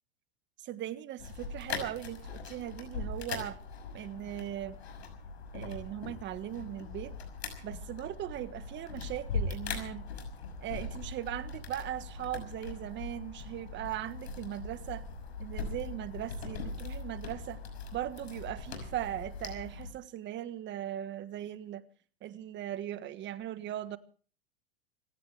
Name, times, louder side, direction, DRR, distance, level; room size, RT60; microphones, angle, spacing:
voice 1, 0.6-3.6 3.9-4.8 5.5-7.2 7.6-10.1 10.6-15.0 15.4-17.6 17.9-21.8 22.2-24.0, right 12 dB, 35° right, 1.5 m, -39 dB
sound 1, 1.2-19.9, left 4 dB, 85° left, 6.1 m, -41 dB
26.5 x 16.0 x 3.4 m
hypercardioid pair, 110°, 31 cm